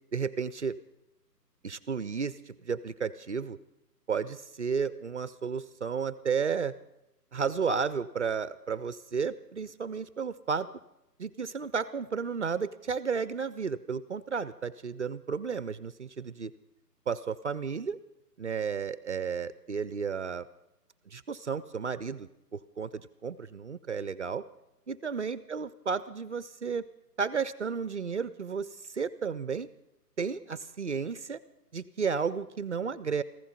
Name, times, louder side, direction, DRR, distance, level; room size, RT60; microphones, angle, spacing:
voice 1, 0.1-0.8 1.6-3.6 4.1-6.7 7.3-10.7 11.2-16.5 17.1-18.0 18.4-20.5 21.1-24.4 24.9-26.8 27.2-29.7 30.2-31.4 31.7-33.2, right 6 dB, 45° right, 16 dB, 0.5 m, -33 dB
15.0 x 15.0 x 5.7 m, 0.87 s
figure-of-eight pair, 150°, 49 cm